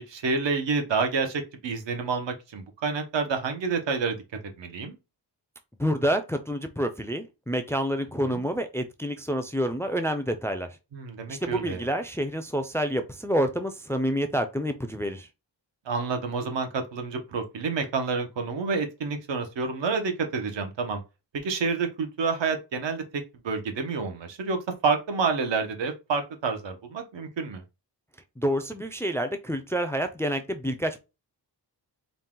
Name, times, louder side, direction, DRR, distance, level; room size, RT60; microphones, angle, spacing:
voice 1, 0.1-4.2 4.6-4.9 8.3-8.4 10.9-11.9 15.8-21.0 21.4-27.6, right 4 dB, 90° right, 1.1 m, -29 dB
voice 2, 5.8-10.8 11.3-15.3 28.4-31.0, equal, 5° left, 0.3 m, -28 dB
4.0 x 2.4 x 3.7 m
wide cardioid pair, 155°, 43 cm